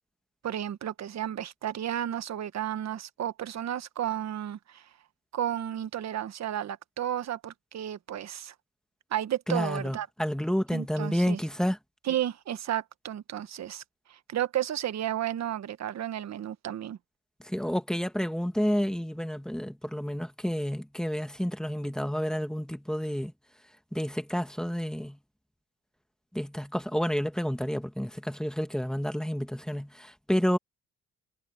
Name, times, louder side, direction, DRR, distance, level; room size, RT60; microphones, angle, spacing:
voice 1, 0.4-4.8 5.3-8.5 9.1-10.1 10.7-11.4 12.0-13.8 14.1-17.0, right 11 dB, 60° right, 1.4 m, -32 dB
voice 2, 9.5-11.8 17.4-23.3 23.9-25.2 26.3-30.6, equal, ahead, 1.7 m, -30 dB
cardioid pair, 90°, 30 cm